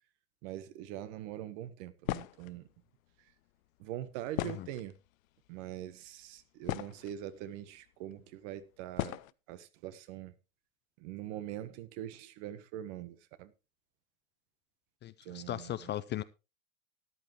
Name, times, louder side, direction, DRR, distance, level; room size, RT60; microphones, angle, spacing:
voice 1, 0.4-2.6 3.8-4.9 5.5-9.2 9.5-10.3 11.0-13.5 15.2-15.9, right 12 dB, 55° right, 1.4 m, -43 dB
sound 1, 2.0-2.5 4.3-5.1 5.9-6.0 6.4-7.2 8.1-8.2 9.0-9.3, left 17 dB, 70° left, 0.6 m, -37 dB
voice 2, 15.0-16.2, left 13 dB, 25° left, 0.5 m, -38 dB
13.5 x 11.0 x 3.1 m
hypercardioid pair, 100°, 43 cm